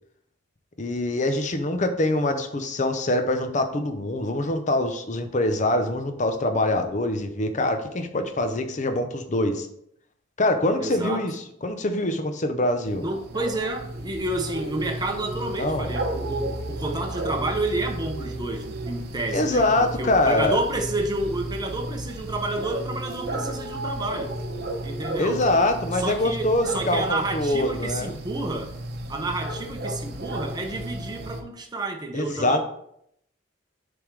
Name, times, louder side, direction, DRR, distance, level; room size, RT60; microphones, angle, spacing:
voice 1, 0.8-9.7 10.4-13.0 15.6-15.9 19.3-20.6 25.2-28.1 32.1-32.6, left 1 dB, 40° left, 7 dB, 0.6 m, -24 dB
voice 2, 10.8-11.2 13.0-24.3 24.8-25.4 25.9-28.7 29.1-32.6, right 2 dB, 20° right, 3 dB, 0.8 m, -30 dB
sound 1, 12.8-31.4, right 1 dB, 55° right, 0.8 m, -33 dB
7.0 x 3.5 x 4.7 m, 0.73 s
head